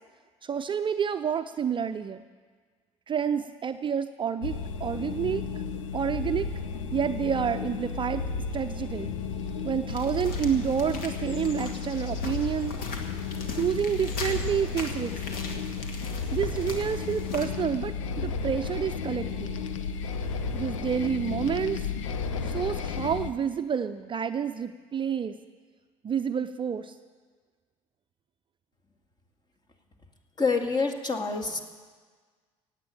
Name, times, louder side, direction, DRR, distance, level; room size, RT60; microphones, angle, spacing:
voice 1, 0.4-2.2 3.1-5.4 5.9-6.5 6.9-8.2 8.5-9.2 9.6-12.8 13.5-15.4 16.3-19.5 20.5-21.9 22.4-25.4 26.0-26.9, right 8 dB, 30° right, 9 dB, 0.6 m, -29 dB
sound 1, 4.4-23.3, left 5 dB, 75° left, 0.8 m, -33 dB
sound 2, 9.9-17.5, left 3 dB, 55° left, 2.1 m, -40 dB
voice 2, 30.4-31.6, left 4 dB, 25° left, 3 dB, 2.1 m, -27 dB
17.0 x 8.3 x 8.9 m, 1.5 s
figure-of-eight pair, 60°, 17 cm